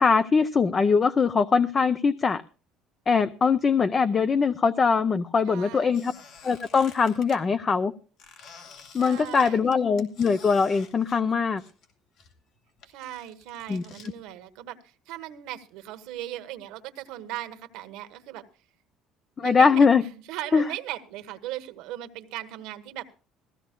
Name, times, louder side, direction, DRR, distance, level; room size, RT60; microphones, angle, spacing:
voice 1, 0.0-2.4 3.1-6.1 6.4-7.9 8.9-11.6 13.7-13.8 19.4-20.0 20.5-20.6, left 5 dB, 25° left, 11 dB, 0.5 m, -22 dB
voice 2, 5.4-6.1 8.9-9.7 12.9-18.5 19.4-23.1, right 13 dB, 80° right, 9 dB, 1.3 m, -38 dB
Squeak, 5.9-7.4 8.2-11.9 12.2-14.1, left 6 dB, 65° left, 2.8 m, -49 dB
19.5 x 15.0 x 2.2 m, 0.37 s
cardioid pair, 145°, 0 cm